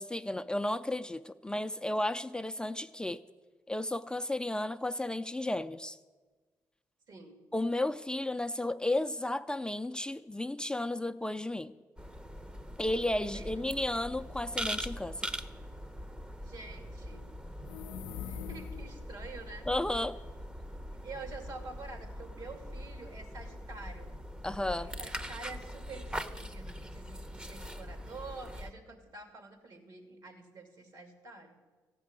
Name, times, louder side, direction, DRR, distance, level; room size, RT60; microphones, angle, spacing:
voice 1, 0.0-3.2 3.7-6.0 7.5-11.7 12.8-15.3 19.7-20.2 24.4-24.9, left 1 dB, 10° left, 9 dB, 0.5 m, -33 dB
voice 2, 7.1-7.4 13.2-13.6 16.4-17.2 18.1-19.7 21.0-24.1 24.8-31.6, right 3 dB, 65° right, 5 dB, 2.6 m, -47 dB
sound 1, 12.0-28.7, equal, 15° right, 0.8 m, -42 dB
sound 2, 17.5-19.1, left 9 dB, 90° left, 0.5 m, -42 dB
14.5 x 6.2 x 9.6 m, 1.3 s
cardioid pair, 65°, 7 cm